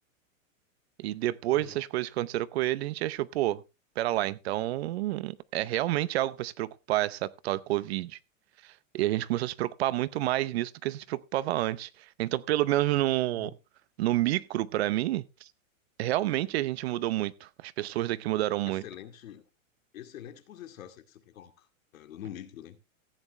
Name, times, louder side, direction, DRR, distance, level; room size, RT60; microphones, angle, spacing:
voice 1, 1.0-3.6 4.0-8.2 8.6-11.9 12.2-13.5 14.0-15.2 16.0-18.8, right 15 dB, 50° right, 0.7 m, -29 dB
voice 2, 18.7-19.4 19.9-21.5 21.9-22.8, left 10 dB, 75° left, 2.3 m, -45 dB
15.0 x 9.8 x 3.2 m
supercardioid pair, 160°, 41 cm